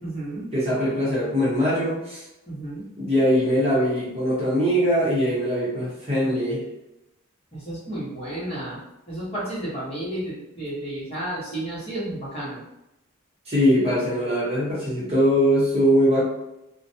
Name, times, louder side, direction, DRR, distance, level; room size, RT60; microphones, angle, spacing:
voice 1, 0.0-0.5 2.5-2.9 7.5-8.8 9.1-12.6, right 1 dB, 30° left, -9 dB, 1.1 m, -32 dB
voice 2, 0.5-2.2 3.0-6.6 13.5-16.2, equal, 30° right, -8 dB, 0.8 m, -21 dB
2.5 x 2.1 x 2.7 m, 0.89 s
head